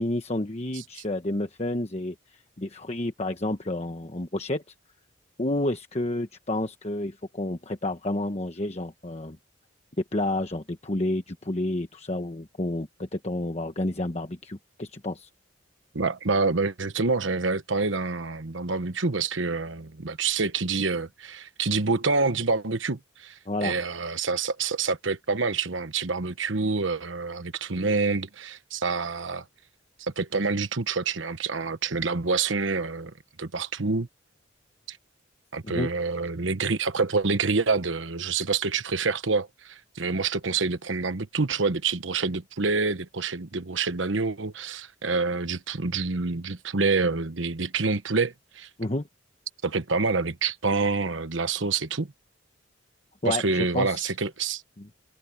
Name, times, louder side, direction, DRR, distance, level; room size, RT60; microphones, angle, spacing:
voice 1, 0.0-4.6 5.4-9.4 10.1-15.3 23.5-23.8 35.6-35.9 48.8-49.1 53.2-54.1 54.8-54.9, left 1 dB, 35° left, 1.1 m, -30 dB
voice 2, 15.9-29.4 30.0-34.1 34.9-35.0 35.5-48.7 49.6-52.1 53.2-54.6, right 4 dB, 80° right, 1.2 m, -27 dB
head